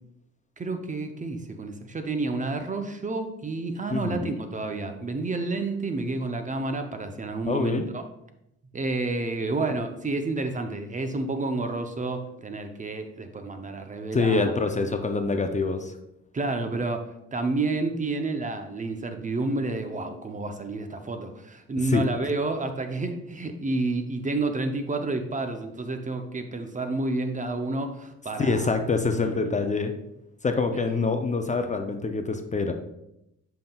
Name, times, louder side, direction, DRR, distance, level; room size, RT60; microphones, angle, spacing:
voice 1, 0.6-8.0 8.7-14.5 16.3-28.7 29.2-29.3, right 2 dB, 25° right, 7 dB, 0.6 m, -30 dB
voice 2, 3.9-4.4 7.5-7.9 14.1-15.9 21.8-22.0 28.4-29.9 30.4-32.7, left 4 dB, 25° left, 6 dB, 0.5 m, -25 dB
7.4 x 5.6 x 2.3 m, 0.85 s
cardioid pair, 90°, 30 cm